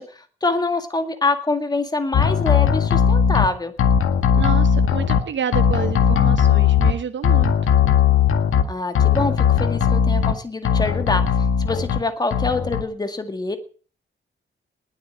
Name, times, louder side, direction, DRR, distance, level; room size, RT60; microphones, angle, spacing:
voice 1, 0.0-3.7 8.7-11.3 11.6-13.6, left 3 dB, 20° left, 8 dB, 2.0 m, -25 dB
sound 1, 2.1-3.5 3.8-5.2 5.5-6.9 7.2-8.6 8.9-10.3 10.6-12.0 12.3-12.8, left 7 dB, 85° left, 1.9 m, -18 dB
voice 2, 4.4-7.7, right 7 dB, 65° right, 10 dB, 1.0 m, -29 dB
20.0 x 8.0 x 8.9 m, 0.42 s
wide cardioid pair, 170°, 21 cm